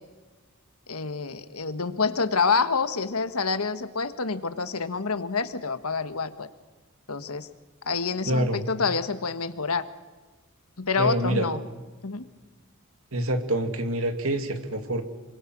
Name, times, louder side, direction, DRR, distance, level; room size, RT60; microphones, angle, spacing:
voice 1, 0.9-6.5 7.1-7.5 7.9-9.8 10.8-11.6 12.0-12.2, left 4 dB, 90° left, 11 dB, 1.5 m, -27 dB
voice 2, 8.3-8.6 11.0-11.5 13.1-15.0, right 1 dB, 75° right, 7 dB, 2.6 m, -26 dB
27.0 x 24.5 x 6.2 m, 1.3 s
head